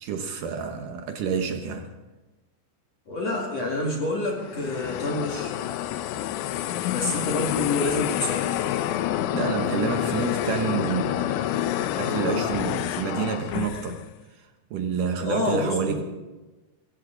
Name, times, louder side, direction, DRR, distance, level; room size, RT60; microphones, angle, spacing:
voice 1, 0.0-1.9 9.3-14.0 14.7-16.0, right 6 dB, 75° right, 5 dB, 1.9 m, -29 dB
voice 2, 3.1-5.5 6.7-8.6 15.2-16.0, left 1 dB, 45° left, -2 dB, 2.6 m, -28 dB
sound 1, 4.3-14.1, left 12 dB, 85° left, 3.1 m, -28 dB
23.0 x 15.5 x 3.9 m, 1.1 s
omnidirectional pair, 5.2 m